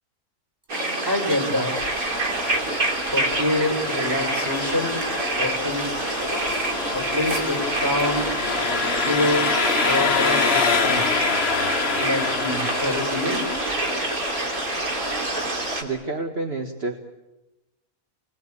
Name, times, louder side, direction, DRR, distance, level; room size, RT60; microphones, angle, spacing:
sound 1, 0.7-15.8, right 2 dB, 90° right, 3.7 m, -27 dB
voice 1, 1.0-1.7 3.1-5.0 5.4-5.9 6.9-8.3 9.0-9.5 9.8-11.1 11.9-13.5, left 1 dB, 15° right, 2 dB, 4.7 m, -26 dB
Engine, 1.8-15.8, left 5 dB, 50° left, 1.4 m, -27 dB
voice 2, 15.8-17.0, right 3 dB, 45° right, 4 dB, 1.8 m, -29 dB
29.5 x 22.5 x 8.7 m, 1.0 s
omnidirectional pair, 1.5 m